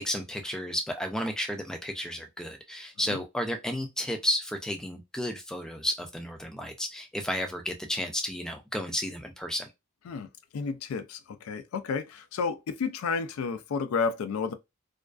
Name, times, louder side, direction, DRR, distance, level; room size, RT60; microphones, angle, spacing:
voice 1, 0.0-9.7, equal, 5° left, 0.3 m, -32 dB
voice 2, 10.1-14.5, left 5 dB, 80° left, 0.3 m, -31 dB
2.4 x 2.3 x 2.3 m
head